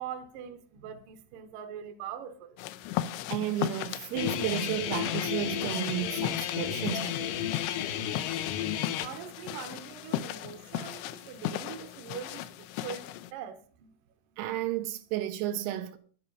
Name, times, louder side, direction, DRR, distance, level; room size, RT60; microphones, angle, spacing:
voice 1, 0.0-2.6 9.0-13.9, right 8 dB, 70° right, 2.2 m, -42 dB
sound 1, 2.6-13.3, left 13 dB, 90° left, 2.8 m, -37 dB
voice 2, 3.3-7.3 14.4-16.0, right 12 dB, 85° right, 2.9 m, -33 dB
Guitar, 4.2-9.1, left 10 dB, 75° left, 2.1 m, -32 dB
11.0 x 10.5 x 5.5 m
omnidirectional pair, 4.7 m